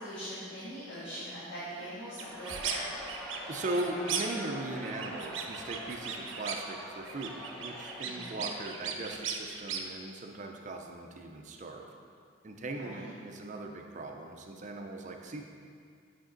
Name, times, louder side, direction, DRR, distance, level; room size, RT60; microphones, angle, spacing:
voice 1, 0.0-2.8 8.0-8.4 12.7-13.1, equal, 65° left, -10 dB, 1.6 m, -42 dB
Crowd, 2.2-9.5, equal, 5° left, 0.7 m, -44 dB
sound 1, 2.2-2.8 3.1-4.5 4.8-6.7 7.0-9.8, right 6 dB, 75° right, 0.7 m, -37 dB
voice 2, 3.5-11.8 12.4-15.4, right 2 dB, 40° right, 3 dB, 0.5 m, -39 dB
8.7 x 5.1 x 3.9 m, 2.2 s
head